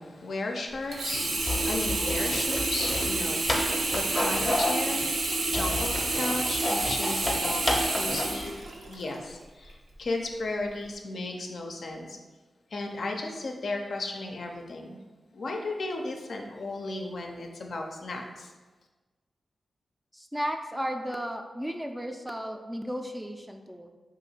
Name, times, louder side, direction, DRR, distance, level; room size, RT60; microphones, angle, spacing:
voice 1, 0.0-5.1 5.5-12.2 12.7-15.0 15.3-18.5, left 2 dB, 70° left, 2 dB, 0.4 m, -35 dB
Sink (filling or washing), 0.9-9.2 9.7-9.8, right 2 dB, 75° right, 0.5 m, -29 dB
sound 1, 1.4-8.4, left 1 dB, 30° left, 0.6 m, -31 dB
voice 2, 20.1-23.9, equal, 10° right, 4 dB, 0.4 m, -34 dB
2.8 x 2.5 x 4.2 m, 1.3 s
cardioid pair, 50°, 0 cm